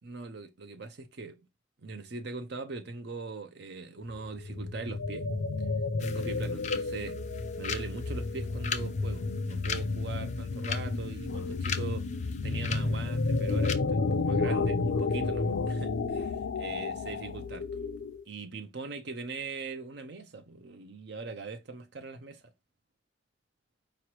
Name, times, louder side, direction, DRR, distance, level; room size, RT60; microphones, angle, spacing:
voice 1, 0.0-1.4 1.8-5.3 6.0-7.2 7.6-12.1 12.4-17.7 18.3-22.4, right 3 dB, 60° right, 0.6 m, -41 dB
sound 1, 4.1-18.2, left 3 dB, 85° left, 0.5 m, -31 dB
sound 2, 6.0-13.7, left 7 dB, 40° left, 0.6 m, -40 dB
4.9 x 3.1 x 3.0 m
head